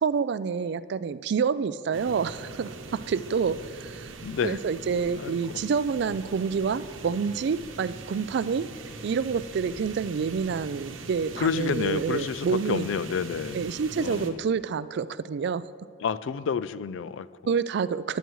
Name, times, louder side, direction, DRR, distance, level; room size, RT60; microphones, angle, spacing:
voice 1, 0.0-4.1 4.4-8.7 9.0-12.9 13.5-15.6 17.5-18.2, right 6 dB, 60° right, 15 dB, 0.3 m, -28 dB
sound 1, 1.9-14.3, right 3 dB, 85° right, 0.9 m, -42 dB
voice 2, 4.2-4.6 5.2-5.6 11.4-13.6 14.0-14.4 16.0-17.3, left 6 dB, 70° left, 16 dB, 0.4 m, -29 dB
20.0 x 9.2 x 3.1 m, 2.4 s
head